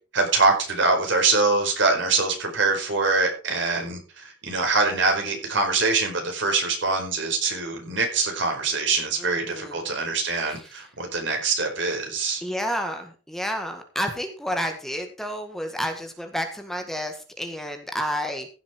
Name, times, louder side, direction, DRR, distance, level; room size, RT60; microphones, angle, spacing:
voice 1, 0.1-12.4, right 3 dB, 85° right, 3 dB, 4.8 m, -24 dB
voice 2, 9.2-9.9 10.7-10.8 12.4-18.5, equal, ahead, 5 dB, 1.9 m, -30 dB
15.5 x 7.2 x 4.5 m, 0.35 s
head